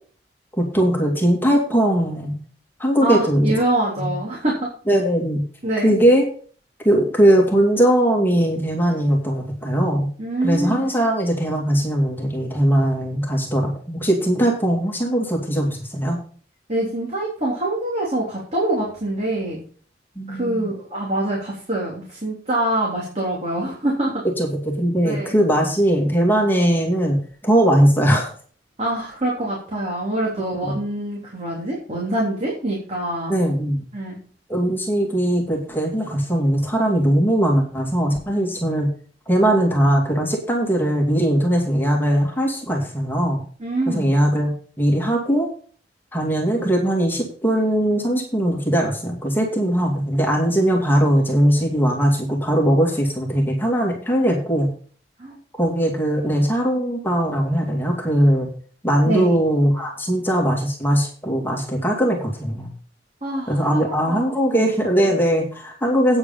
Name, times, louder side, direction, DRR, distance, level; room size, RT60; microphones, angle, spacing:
voice 1, 0.6-2.4 2.8-3.6 4.0-4.1 4.9-5.4 5.8-6.2 6.8-10.1 10.4-16.2 20.2-20.7 24.4-28.3 30.6-30.8 33.3-33.9 34.5-38.9 39.3-43.4 43.9-45.5 46.1-54.7 55.6-58.5 58.8-62.7 63.5-66.2, right 1 dB, 10° left, 0 dB, 2.3 m, -20 dB
voice 2, 3.0-4.7 5.6-5.9 10.2-10.8 16.7-19.6 20.3-24.2 25.0-25.3 28.8-33.3 33.9-34.2 43.6-44.1 55.2-55.4 59.1-59.4 63.2-64.2 64.5-64.7, right 1 dB, 40° right, -4 dB, 3.3 m, -25 dB
9.0 x 8.2 x 5.5 m, 0.43 s
head